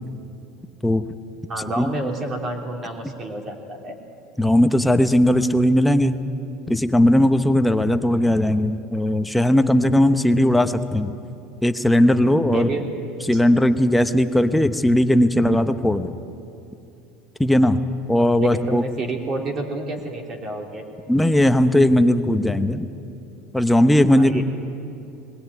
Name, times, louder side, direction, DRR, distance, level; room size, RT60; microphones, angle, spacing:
voice 1, 1.5-4.0 12.5-12.9 13.3-13.4 18.4-20.8 24.1-24.4, right 2 dB, 30° right, 3 dB, 2.9 m, -29 dB
voice 2, 4.4-6.1 6.7-11.2 11.6-12.7 13.3-16.1 17.4-17.8 18.1-18.8 21.1-22.9 23.5-24.4, left 1 dB, 5° left, 9 dB, 0.8 m, -18 dB
21.0 x 16.5 x 9.5 m, 2.7 s
supercardioid pair, 130°, 0 cm